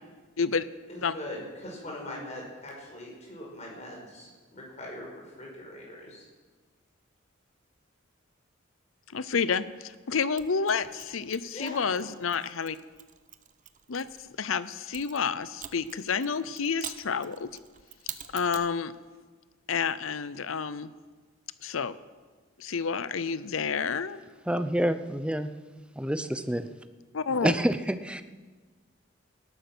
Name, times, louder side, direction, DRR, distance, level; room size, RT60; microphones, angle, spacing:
voice 1, 0.9-6.2 11.5-11.9, left 1 dB, 35° left, -2 dB, 5.4 m, -41 dB
voice 2, 9.1-12.8 13.9-14.1 14.4-17.5 18.3-18.9 19.7-20.9 21.6-22.0 22.6-24.2 27.1-27.5, left 5 dB, 85° left, 15 dB, 0.6 m, -29 dB
Mechanisms, 10.4-14.2 14.9-18.7, right 10 dB, 40° right, 0.8 m, -46 dB
voice 3, 24.5-25.5 25.8-26.7 27.4-28.2, equal, 5° right, 11 dB, 0.6 m, -28 dB
19.0 x 12.0 x 6.1 m, 1.4 s
head